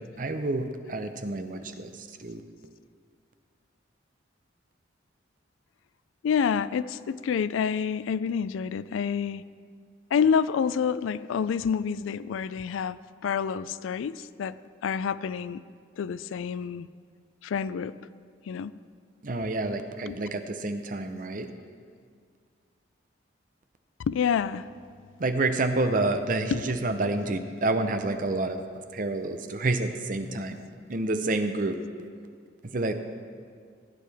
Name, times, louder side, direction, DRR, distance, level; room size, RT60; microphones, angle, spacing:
voice 1, 0.0-1.9 2.2-2.4 19.2-21.5 25.2-28.6 28.9-30.6 30.9-31.7 32.7-32.9, right 2 dB, 45° right, 8 dB, 0.6 m, -28 dB
voice 2, 6.2-9.4 10.1-14.6 14.8-15.6 16.0-16.9 17.4-17.9 18.5-18.7 20.1-20.2 24.1-24.7 25.8-26.1 26.5-27.0, left 7 dB, 85° left, 16 dB, 0.3 m, -28 dB
16.0 x 9.3 x 3.5 m, 2.1 s
head